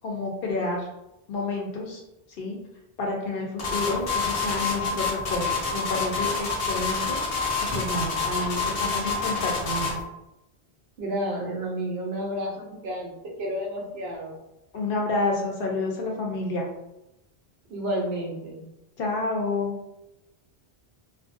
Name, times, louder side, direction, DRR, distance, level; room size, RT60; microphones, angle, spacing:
voice 1, 0.0-0.8 1.3-2.0 2.4-2.6 3.0-7.3 7.7-10.0 14.7-16.7 19.0-19.8, left 2 dB, 60° left, -1 dB, 0.8 m, -29 dB
sound 1, 3.6-10.0, left 4 dB, 90° left, 1.0 m, -27 dB
voice 2, 11.0-13.1 13.4-14.3 17.7-18.6, equal, 75° right, 0 dB, 0.8 m, -30 dB
2.5 x 2.0 x 2.5 m, 0.90 s
omnidirectional pair, 1.1 m